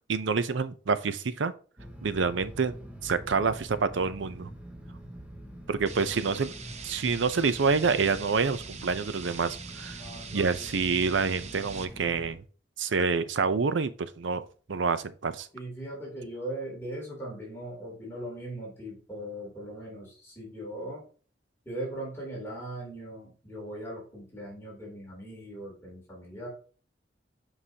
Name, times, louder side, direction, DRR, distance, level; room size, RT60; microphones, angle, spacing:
voice 1, 0.1-1.5 2.0-2.7 3.0-4.5 5.7-6.5 6.8-10.0 10.3-12.4 12.8-15.5, right 5 dB, 80° right, 0.6 m, -27 dB
sound 1, 1.8-12.3, equal, 10° right, 0.8 m, -45 dB
sound 2, 5.9-11.9, right 6 dB, 35° right, 0.6 m, -44 dB
voice 2, 10.0-10.6 15.5-21.0 21.6-26.5, right 1 dB, 15° left, 3.0 m, -39 dB
7.5 x 4.8 x 2.8 m
head